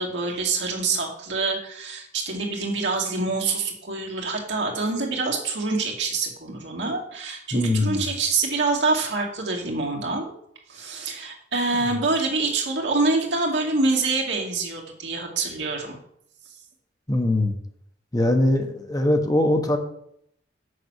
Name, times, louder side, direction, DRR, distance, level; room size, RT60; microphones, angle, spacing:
voice 1, 0.0-10.3 10.7-16.0, right 3 dB, 70° right, -1 dB, 2.3 m, -26 dB
voice 2, 7.5-8.0 17.1-17.5 18.1-19.8, left 1 dB, 20° left, 4 dB, 1.0 m, -21 dB
6.5 x 6.0 x 7.4 m, 0.70 s
head